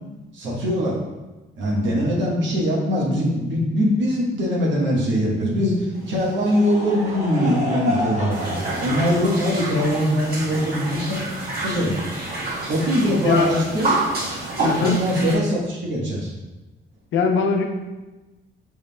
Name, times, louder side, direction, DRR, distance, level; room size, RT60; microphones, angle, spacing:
voice 1, 0.3-1.0 1.5-11.2 11.6-12.0 12.7-14.0 14.8-16.3, equal, 70° right, -4 dB, 1.2 m, -22 dB
Laughter / Crowd, 5.9-11.7, right 1 dB, 35° right, 1.3 m, -31 dB
sound 1, 8.3-15.3, right 2 dB, 50° right, 1.5 m, -28 dB
voice 2, 14.6-15.0 17.1-17.6, left 5 dB, 75° left, 4 dB, 0.6 m, -20 dB
5.1 x 3.5 x 2.2 m, 1.1 s
cardioid pair, 90°, 20 cm